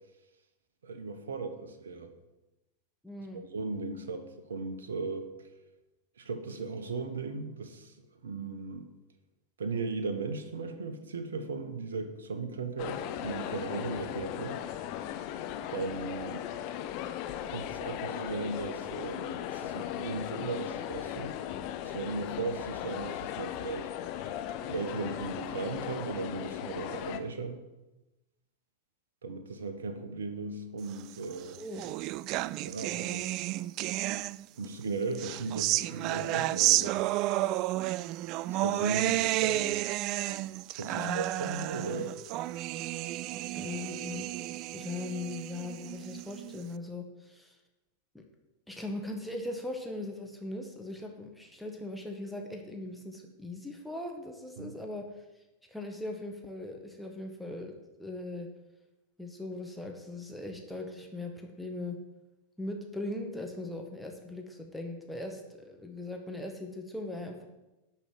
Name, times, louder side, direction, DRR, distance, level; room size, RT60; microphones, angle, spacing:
voice 1, 0.8-2.1 3.5-5.5 6.2-8.9 9.6-14.6 15.7-16.5 17.4-21.3 21.8-23.9 24.7-27.6 29.2-31.6 32.6-33.3 34.6-37.1 38.6-39.8 40.7-42.2 54.6-54.8, right 3 dB, 65° right, 8 dB, 1.4 m, -37 dB
voice 2, 3.0-3.4 31.6-31.9 40.9-41.3 43.5-44.3 44.7-47.6 48.1-48.2 48.7-55.1 55.7-58.5 59.2-62.0 62.6-67.4, left 2 dB, ahead, 1 dB, 1.8 m, -39 dB
sound 1, 12.8-27.2, left 11 dB, 45° left, 0.9 m, -37 dB
sound 2, 31.2-34.7 35.1-46.6, right 16 dB, 40° right, 0.3 m, -32 dB
11.0 x 5.9 x 7.7 m, 1.0 s
figure-of-eight pair, 90°, 0 cm